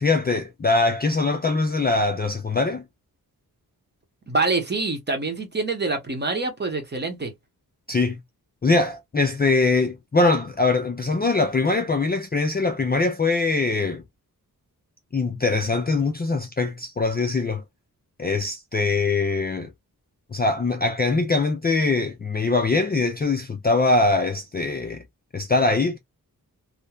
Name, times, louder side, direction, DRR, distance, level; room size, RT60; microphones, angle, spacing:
voice 1, 0.0-2.8 7.9-8.2 8.6-14.0 15.1-17.6 18.2-19.7 20.3-25.0 25.3-26.0, left 3 dB, 30° left, 0.3 m, -22 dB
voice 2, 4.3-7.3, right 3 dB, 30° right, 0.8 m, -25 dB
3.0 x 2.0 x 2.2 m
wide cardioid pair, 175°, 36 cm